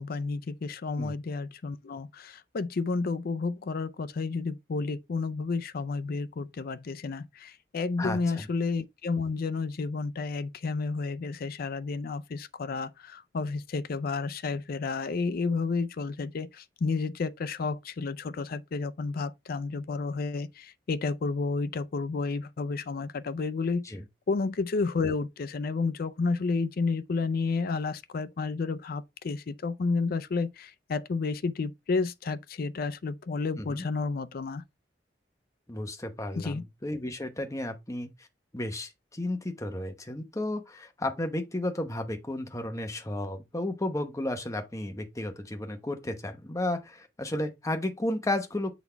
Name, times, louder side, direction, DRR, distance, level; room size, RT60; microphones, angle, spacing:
voice 1, 0.0-23.8 24.3-34.6 36.4-36.6, left 4 dB, 55° left, 0.4 m, -31 dB
voice 2, 8.0-8.5 23.8-24.0 33.6-33.8 35.7-38.3 38.5-48.7, left 1 dB, 15° left, 1.0 m, -33 dB
7.1 x 4.1 x 3.3 m
head